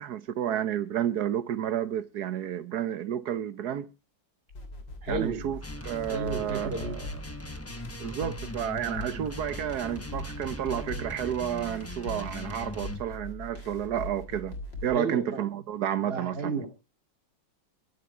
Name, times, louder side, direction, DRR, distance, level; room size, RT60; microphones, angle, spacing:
voice 1, 0.0-3.9 5.1-7.1 8.0-16.5, right 10 dB, 60° right, 1.4 m, -31 dB
sound 1, 4.5-14.9, left 1 dB, 75° left, 4.0 m, -41 dB
voice 2, 5.0-5.5 6.1-7.0 14.9-15.4 16.0-16.7, right 4 dB, 30° right, 2.7 m, -32 dB
sound 2, 5.6-13.1, left 2 dB, 15° left, 0.6 m, -41 dB
22.0 x 8.1 x 4.6 m
omnidirectional pair, 2.0 m